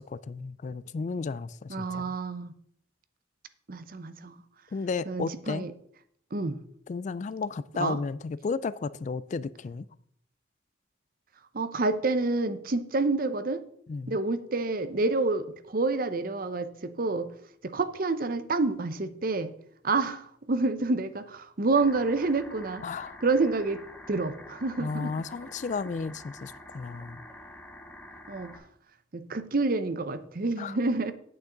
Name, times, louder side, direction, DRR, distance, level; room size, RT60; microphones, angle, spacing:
voice 1, 0.0-2.1 4.7-5.7 6.9-9.8 13.9-14.2 22.8-23.2 24.8-27.2 30.6-30.8, left 4 dB, 40° left, 0.3 m, -33 dB
voice 2, 1.7-2.5 3.7-4.4 5.1-5.7 6.3-6.6 7.8-8.0 11.5-13.6 14.1-17.3 17.6-19.5 19.8-22.8 23.2-23.8 24.1-25.1 28.3-28.5 29.1-31.1, right 3 dB, 50° right, 0.7 m, -28 dB
sound 1, 21.7-28.6, left 1 dB, 10° left, 1.4 m, -47 dB
9.2 x 8.5 x 3.9 m
head